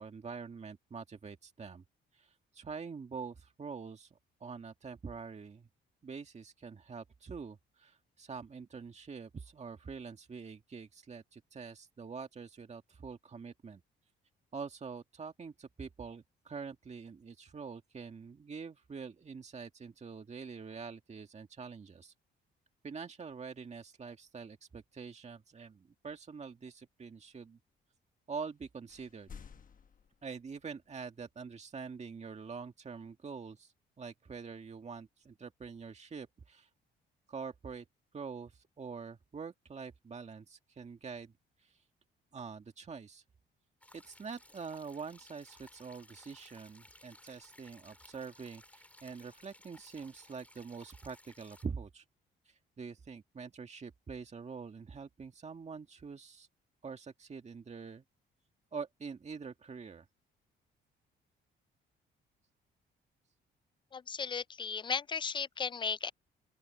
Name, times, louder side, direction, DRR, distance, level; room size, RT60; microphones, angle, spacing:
voice 1, 0.0-1.8 2.1-5.7 6.0-13.8 14.5-22.1 22.8-27.6 28.3-29.4 30.2-36.7 37.3-37.9 38.1-41.3 41.6-41.8 42.3-43.2 43.9-52.0 52.5-56.5 56.8-58.0 58.7-60.1, right 5 dB, 35° right, 1.9 m, -45 dB
sound 1, 28.4-28.6 28.9-30.9, left 6 dB, 45° left, 1.1 m, -54 dB
sound 2, 43.8-51.7, left 1 dB, 5° left, 3.4 m, -59 dB
voice 2, 63.9-66.1, left 6 dB, 25° left, 0.3 m, -35 dB
open air
cardioid pair, 90°, 20 cm